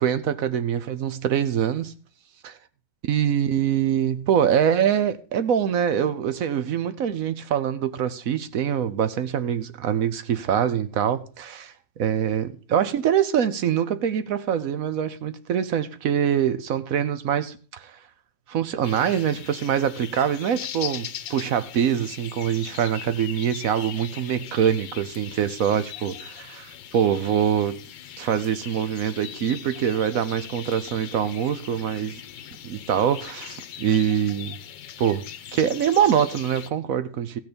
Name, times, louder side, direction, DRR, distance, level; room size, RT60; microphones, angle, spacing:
voice 1, 0.0-1.9 2.4-2.5 3.1-18.0 18.5-27.8 28.2-32.2 32.6-34.6 35.0-35.2 35.5-37.4, right 9 dB, 60° right, 1.0 m, -24 dB
sound 1, 18.8-36.7, left 10 dB, 80° left, 1.5 m, -40 dB
15.0 x 6.6 x 5.1 m
omnidirectional pair, 1.9 m